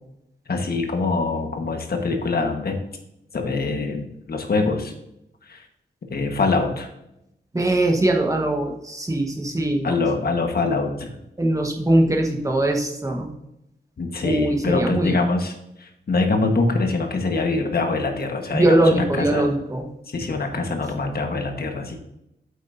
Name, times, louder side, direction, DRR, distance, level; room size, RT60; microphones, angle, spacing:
voice 1, 0.5-2.8 3.3-4.9 5.4-5.6 6.1-6.9 9.8-11.2 14.0-18.7 18.9-19.0 19.3-19.5 20.1-22.0, left 3 dB, 60° left, 4 dB, 1.4 m, -24 dB
voice 2, 7.5-9.9 11.4-13.3 14.2-15.2 18.5-19.9, right 1 dB, 20° right, 1 dB, 1.3 m, -21 dB
8.3 x 8.0 x 2.7 m, 0.84 s
wide cardioid pair, 150°, 18 cm